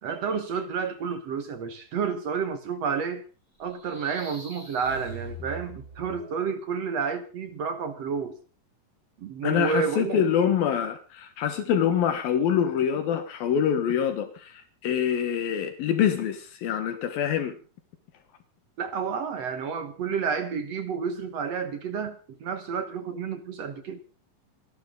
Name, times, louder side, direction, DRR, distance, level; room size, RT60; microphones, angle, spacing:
voice 1, 0.0-3.2 3.6-8.4 9.2-10.5 18.8-24.0, right 6 dB, 55° right, 9 dB, 2.2 m, -30 dB
sound 1, 3.6-6.5, right 1 dB, 25° right, 6.7 m, -42 dB
voice 2, 9.4-17.6, left 8 dB, 80° left, 8 dB, 3.3 m, -25 dB
27.5 x 12.0 x 3.9 m, 0.36 s
omnidirectional pair, 4.1 m